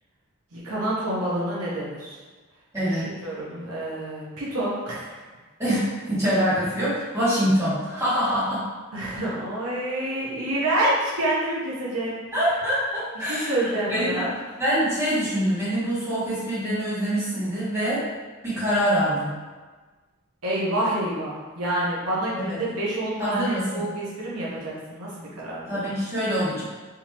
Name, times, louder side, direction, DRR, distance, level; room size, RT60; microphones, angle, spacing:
voice 1, 0.5-2.2 2.8-5.2 8.9-12.2 13.3-14.3 20.4-25.8, right 1 dB, 80° right, -6 dB, 1.0 m, -28 dB
voice 2, 2.7-3.1 5.6-8.6 12.3-14.3 14.6-18.0 18.4-19.3 22.4-22.6 23.2-23.8 25.7-26.6, equal, 15° right, -11 dB, 1.3 m, -25 dB
3.7 x 2.8 x 2.9 m, 1.3 s
head